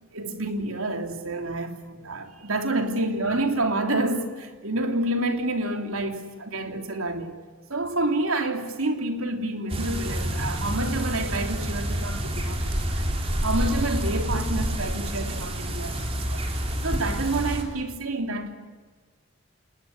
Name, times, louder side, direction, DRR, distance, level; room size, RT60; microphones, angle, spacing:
voice 1, 0.1-7.4 7.7-13.1 13.4-16.5 16.8-18.5, right 2 dB, 90° right, 3.2 m, -28 dB
sound 1, 9.7-17.6, equal, 30° right, 3.8 m, -28 dB
28.0 x 21.0 x 9.8 m
head